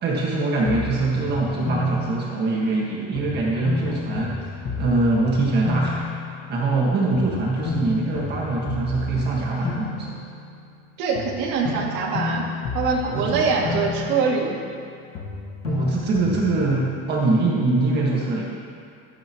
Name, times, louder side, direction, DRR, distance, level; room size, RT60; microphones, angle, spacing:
voice 1, 0.0-4.5 4.8-6.1 6.5-10.2 13.0-13.8 15.6-18.5, right 3 dB, 35° right, -4 dB, 1.7 m, -23 dB
sound 1, 0.6-2.8 3.1-6.9 7.1-10.8 11.1-14.9 15.1-16.7, left 5 dB, 50° left, 1.6 m, -31 dB
voice 2, 11.0-12.4 12.7-14.6, right 5 dB, 75° right, -2 dB, 2.4 m, -23 dB
15.5 x 13.5 x 3.0 m, 2.3 s
cardioid pair, 180°, 30 cm